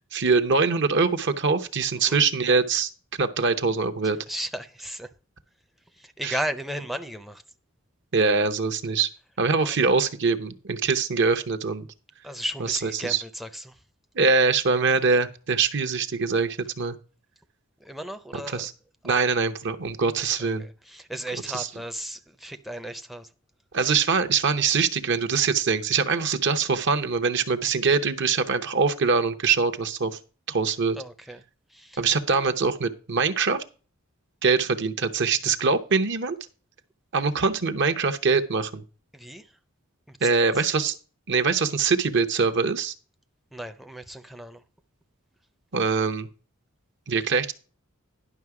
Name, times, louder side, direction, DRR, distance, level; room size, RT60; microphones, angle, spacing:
voice 1, 0.1-2.9 3.2-4.2 6.2-6.3 8.1-9.1 9.4-11.9 12.8-13.2 14.1-17.0 18.3-18.7 19.0-20.7 21.5-21.7 23.7-30.2 30.5-31.0 32.0-33.6 34.4-36.4 37.1-38.8 40.2-40.9 41.3-42.9 45.7-46.3 47.1-47.5, right 4 dB, 60° right, 0.8 m, -23 dB
voice 2, 4.0-5.1 5.9-7.4 9.6-9.8 12.2-13.8 17.8-18.7 19.0-19.4 20.4-23.3 31.0-31.4 31.7-32.0 39.1-39.6 40.1-40.6 43.5-44.6, right 1 dB, ahead, 0.5 m, -35 dB
11.0 x 5.8 x 4.8 m
head